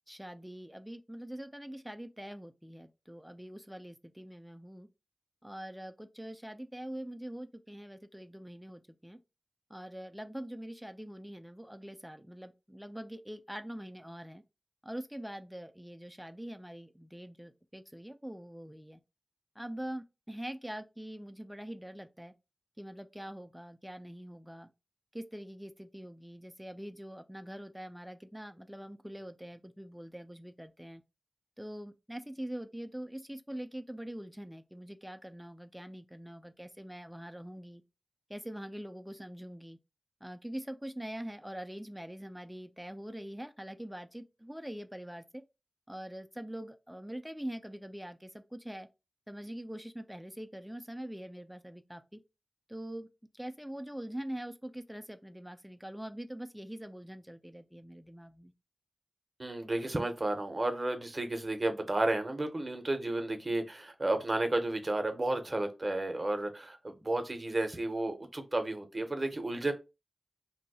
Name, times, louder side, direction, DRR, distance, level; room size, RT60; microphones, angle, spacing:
voice 1, 0.1-4.9 5.4-9.2 9.7-14.4 14.8-19.0 19.6-22.3 22.8-24.7 25.1-31.0 31.6-37.8 38.3-39.8 40.2-45.4 45.9-48.9 49.3-52.2 52.7-53.1 53.3-58.5, right 1 dB, 5° right, 0.4 m, -44 dB
voice 2, 59.4-69.7, right 2 dB, 35° right, 0.7 m, -32 dB
2.7 x 2.0 x 4.0 m
wide cardioid pair, 90°, 0 cm